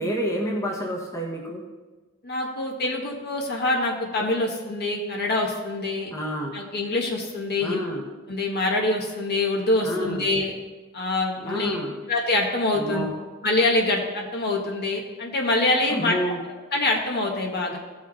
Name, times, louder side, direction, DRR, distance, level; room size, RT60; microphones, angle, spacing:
voice 1, 0.0-1.6 6.1-6.6 7.6-8.1 9.8-10.2 11.4-12.0 12.7-13.1 15.9-16.4, equal, 15° left, -3 dB, 1.5 m, -29 dB
voice 2, 2.2-6.1 6.5-7.8 8.3-10.5 10.9-11.8 12.1-13.1 13.4-16.2 16.7-17.8, left 2 dB, 50° left, 0 dB, 1.7 m, -25 dB
16.5 x 6.1 x 4.2 m, 1.3 s
head